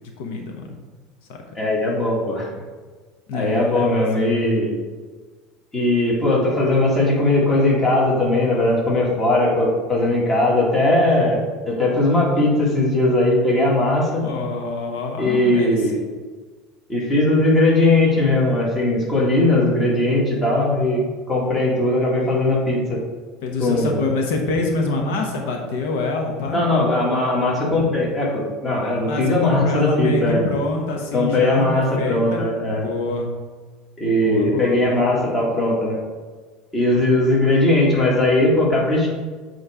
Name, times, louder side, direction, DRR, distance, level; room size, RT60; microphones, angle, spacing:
voice 1, 0.2-0.8 1.3-1.4 3.3-4.1 14.2-16.2 23.4-26.6 29.1-33.3 34.1-35.1, left 3 dB, 80° left, 2 dB, 0.9 m, -26 dB
voice 2, 1.6-2.4 3.3-4.7 5.7-11.4 11.7-14.2 15.2-16.0 16.9-21.0 21.3-23.0 23.6-24.0 26.5-30.4 31.1-32.8 34.0-36.0 36.7-39.1, left 2 dB, 15° left, -4 dB, 1.8 m, -19 dB
7.9 x 3.2 x 4.9 m, 1.4 s
cardioid pair, 145°, 0 cm